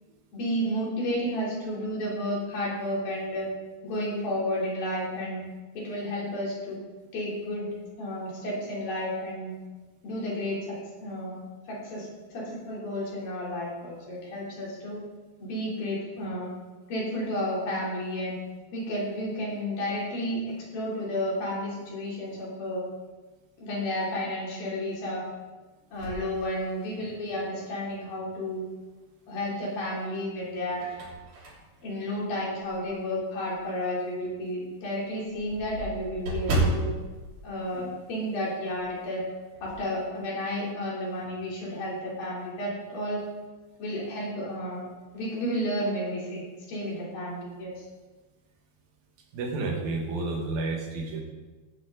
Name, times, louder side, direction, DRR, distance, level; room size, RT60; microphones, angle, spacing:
voice 1, 0.3-3.5 3.8-5.4 5.8-6.8 7.1-7.7 8.0-9.6 10.0-10.8 11.0-11.4 11.7-12.1 12.3-15.0 15.4-16.5 16.9-18.4 18.7-20.4 20.7-22.8 23.6-25.2 25.9-28.7 29.3-30.9 31.8-36.9 37.4-39.2 39.6-43.2 43.8-44.8 45.1-47.8, equal, 80° left, -5 dB, 5.4 m, -32 dB
sound 1, 25.9-27.3 27.8-27.9 29.4-29.9 30.4-33.0 33.5-33.6 34.0-34.1 34.3-34.4 34.7-38.5 38.7-39.0 39.3-39.9, right 2 dB, 60° right, 4.6 m, -33 dB
voice 2, 49.3-51.2, right 3 dB, 80° right, 0 dB, 3.7 m, -30 dB
16.0 x 9.9 x 4.0 m, 1.2 s
omnidirectional pair, 4.1 m